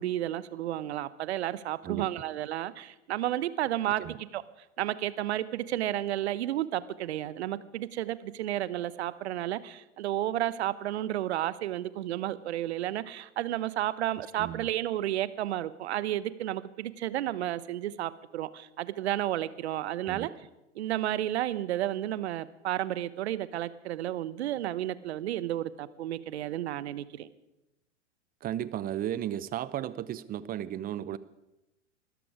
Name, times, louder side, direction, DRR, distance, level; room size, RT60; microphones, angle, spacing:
voice 1, 0.0-4.0 4.3-4.4 4.8-20.3 20.8-27.3, right 13 dB, 65° right, 17 dB, 1.0 m, -32 dB
voice 2, 1.8-2.2 4.0-4.2 14.2-14.7 20.1-20.3 28.4-31.2, right 11 dB, 25° right, 17 dB, 0.7 m, -35 dB
20.5 x 13.5 x 4.8 m, 0.92 s
hypercardioid pair, 100°, 36 cm